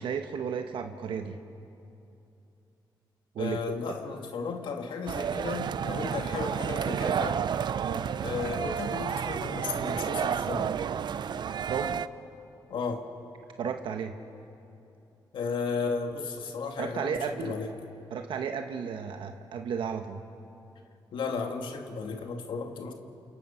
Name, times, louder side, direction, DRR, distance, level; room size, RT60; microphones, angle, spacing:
voice 1, 0.0-1.4 3.3-3.6 5.9-6.1 7.8-8.1 11.6-12.0 13.6-14.2 16.8-17.6 18.1-20.2, right 7 dB, 75° right, 6 dB, 1.2 m, -33 dB
voice 2, 3.4-7.5 8.2-10.8 12.7-13.1 15.3-17.7 21.1-22.9, left 5 dB, 75° left, 4 dB, 2.1 m, -34 dB
sound 1, 5.1-12.1, right 8 dB, 60° right, 0.6 m, -31 dB
29.5 x 27.5 x 5.7 m, 2.7 s
cardioid pair, 85°, 9 cm